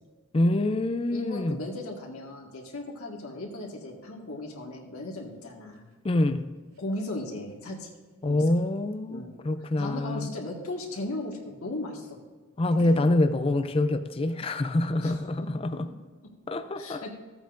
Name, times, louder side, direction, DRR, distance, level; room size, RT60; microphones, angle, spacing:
voice 1, 0.3-1.6 6.0-6.5 8.2-10.3 12.6-15.8 16.5-17.0, left 2 dB, 25° left, 10 dB, 0.4 m, -26 dB
voice 2, 1.1-5.9 6.8-7.9 8.2-8.4 9.1-9.3 9.8-12.2 15.0-15.2 15.7-15.8 16.2-16.3 16.8-17.1, left 1 dB, 80° left, -1 dB, 1.7 m, -37 dB
Scissors, 5.3-11.5 12.0-13.2, equal, 75° right, 2.3 m, -53 dB
15.0 x 8.7 x 2.6 m, 1.4 s
head